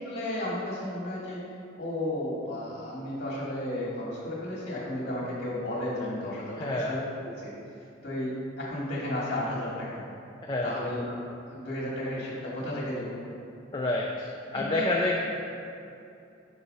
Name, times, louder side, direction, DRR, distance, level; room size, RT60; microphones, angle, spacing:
voice 1, 0.0-1.4 1.8-7.0 7.4-7.5 8.0-10.0 10.6-11.1 11.4-13.2 14.5-14.9, left 1 dB, 50° left, -7 dB, 1.1 m, -33 dB
voice 2, 6.6-7.0 10.5-10.8 13.7-15.2, left 2 dB, 25° left, -1 dB, 0.3 m, -28 dB
5.5 x 4.0 x 5.0 m, 2.7 s
head